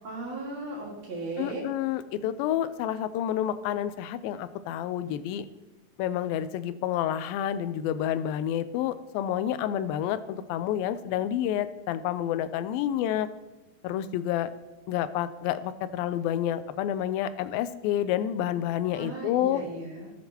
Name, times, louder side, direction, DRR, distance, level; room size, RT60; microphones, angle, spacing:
voice 1, 0.0-1.7 18.9-20.1, right 2 dB, 55° right, -1 dB, 2.7 m, -36 dB
voice 2, 1.4-5.5 6.0-13.3 13.8-14.5 14.9-19.6, left 11 dB, 85° left, 13 dB, 2.3 m, -29 dB
18.0 x 7.8 x 2.9 m, 1.1 s
omnidirectional pair, 4.1 m